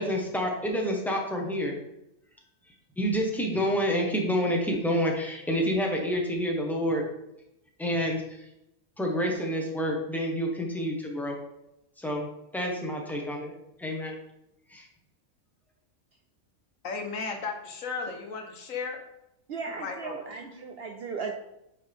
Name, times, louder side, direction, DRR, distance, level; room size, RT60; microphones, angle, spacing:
voice 1, 0.0-1.7 3.0-7.0 7.8-8.4 9.0-11.4 12.0-12.3 12.5-13.5 13.8-14.1 14.7-14.8, equal, ahead, 0 dB, 1.1 m, -28 dB
voice 2, 16.8-19.0 19.8-20.2, left 4 dB, 75° left, 3 dB, 1.4 m, -34 dB
voice 3, 19.5-21.3, right 5 dB, 60° right, 4 dB, 0.7 m, -36 dB
8.9 x 4.5 x 3.6 m, 0.84 s
omnidirectional pair, 1.4 m